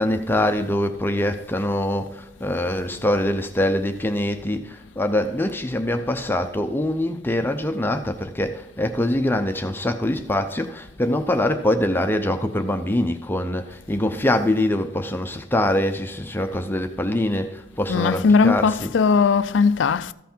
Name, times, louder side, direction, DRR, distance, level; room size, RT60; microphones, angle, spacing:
voice 1, 0.0-19.0, left 1 dB, 10° left, 0.6 m, -24 dB
voice 2, 17.9-20.1, left 5 dB, 75° left, 0.4 m, -18 dB
14.0 x 5.8 x 4.4 m
head